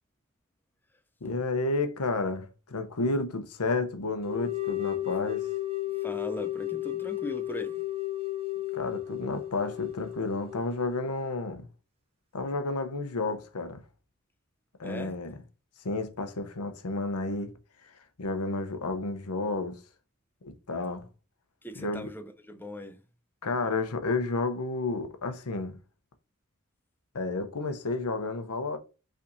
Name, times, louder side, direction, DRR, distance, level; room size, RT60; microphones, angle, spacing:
voice 1, 1.2-5.5 8.7-11.7 12.3-13.8 14.8-15.3 15.8-17.5 18.2-19.8 20.4-21.1 21.8-22.1 23.4-25.8 27.1-28.8, left 3 dB, 85° left, 0.8 m, -31 dB
sound 1, 4.2-11.0, left 15 dB, 25° right, 0.9 m, -34 dB
voice 2, 5.9-7.8 14.8-15.2 21.6-23.0, equal, 10° left, 0.6 m, -39 dB
5.6 x 3.5 x 2.6 m
head